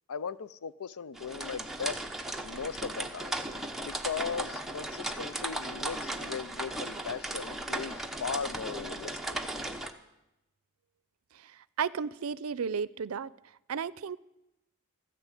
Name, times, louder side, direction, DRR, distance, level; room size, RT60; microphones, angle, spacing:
voice 1, 0.1-2.0 2.4-3.3 3.8-9.4, left 6 dB, 80° left, 0.5 m, -38 dB
sound 1, 1.1-9.9, right 1 dB, ahead, 0.9 m, -36 dB
voice 2, 11.8-13.3 13.7-14.2, right 6 dB, 80° right, 0.5 m, -33 dB
14.0 x 10.5 x 8.3 m
head